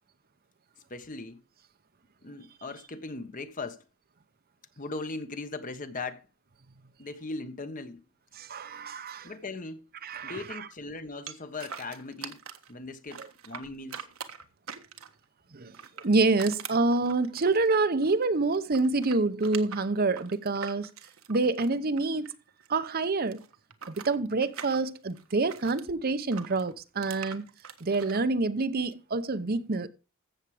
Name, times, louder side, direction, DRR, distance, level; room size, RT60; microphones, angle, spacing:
voice 1, 0.9-1.4 2.2-3.8 4.8-6.3 7.0-8.0 9.2-9.9 10.2-12.4 12.7-14.1, left 3 dB, 40° left, 1.2 m, -39 dB
voice 2, 8.4-9.3 10.0-10.6 13.2-13.3 15.5-15.7 16.0-20.9 21.3-22.3 22.7-23.4 23.9-27.4 27.8-29.9, right 3 dB, 45° right, 0.8 m, -27 dB
sound 1, 11.3-12.7 13.1-15.2 15.7-18.2 18.5-22.7 22.9-25.9 26.3-28.2, right 7 dB, 80° right, 1.4 m, -43 dB
14.5 x 7.4 x 4.9 m
head